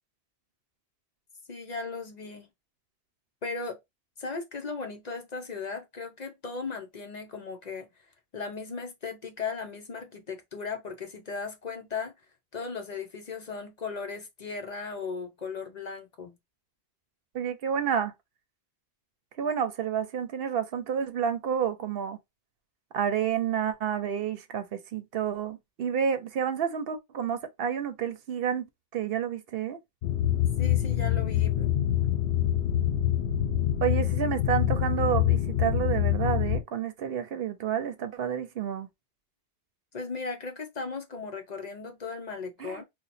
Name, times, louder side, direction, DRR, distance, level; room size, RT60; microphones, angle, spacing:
voice 1, 1.5-2.5 3.4-3.8 4.2-7.9 8.3-12.1 12.5-16.3 30.6-31.7 39.9-42.8, left 4 dB, 50° left, 0.7 m, -37 dB
voice 2, 17.3-18.1 19.4-22.2 22.9-29.8 33.8-38.9 42.6-42.8, right 8 dB, 70° right, 0.8 m, -30 dB
sound 1, 30.0-36.6, left 11 dB, 85° left, 0.8 m, -25 dB
2.8 x 2.1 x 4.0 m
omnidirectional pair, 1.1 m